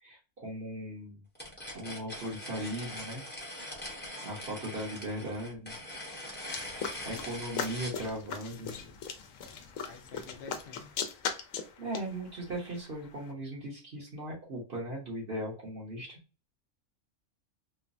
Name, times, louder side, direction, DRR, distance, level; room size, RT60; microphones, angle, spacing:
voice 1, 0.0-1.2 1.7-3.2 4.2-5.7 7.0-8.7 11.8-16.2, right 1 dB, 55° right, 1.1 m, -38 dB
sound 1, 1.4-8.0, left 1 dB, 10° left, 0.8 m, -42 dB
sound 2, 6.5-13.3, left 6 dB, 85° left, 1.0 m, -39 dB
voice 2, 9.8-10.9, left 4 dB, 60° left, 0.6 m, -49 dB
3.1 x 2.1 x 2.5 m
omnidirectional pair, 1.3 m